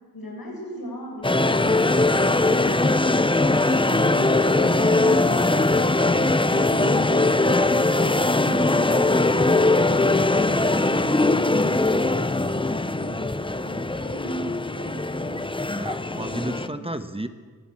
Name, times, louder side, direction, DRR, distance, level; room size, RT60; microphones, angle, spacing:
voice 1, 0.1-3.3 3.8-7.4 7.7-10.3 10.5-15.4 16.2-17.0, equal, 75° left, 0 dB, 7.9 m, -37 dB
sound 1, 1.2-16.7, left 2 dB, 15° left, 0.8 m, -21 dB
voice 2, 3.8-4.1 15.7-17.3, right 1 dB, 15° right, 9 dB, 1.2 m, -32 dB
21.5 x 16.5 x 8.9 m, 1.5 s
wide cardioid pair, 70°, 36 cm